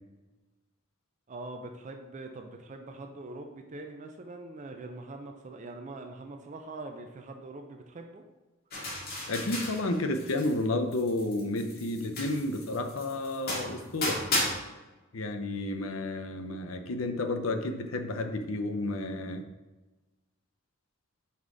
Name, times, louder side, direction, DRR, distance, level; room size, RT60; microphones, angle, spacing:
voice 1, 1.3-8.2, right 2 dB, 35° right, 4 dB, 0.4 m, -43 dB
sound 1, 8.7-10.6 10.9-14.5, left 1 dB, 50° left, 1.8 m, -34 dB
voice 2, 9.3-14.2 15.1-19.4, left 2 dB, 75° left, 6 dB, 0.6 m, -31 dB
5.5 x 4.8 x 3.9 m, 1.1 s
head